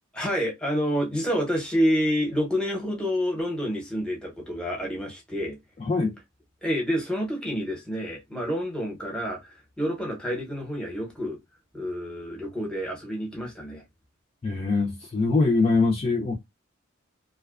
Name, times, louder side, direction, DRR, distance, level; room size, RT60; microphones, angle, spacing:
voice 1, 0.1-5.6 6.6-11.4 11.7-13.8, equal, 5° left, 0.7 m, -28 dB
voice 2, 5.8-6.2 14.4-16.4, left 3 dB, 30° left, 0.3 m, -23 dB
2.4 x 2.1 x 2.3 m
head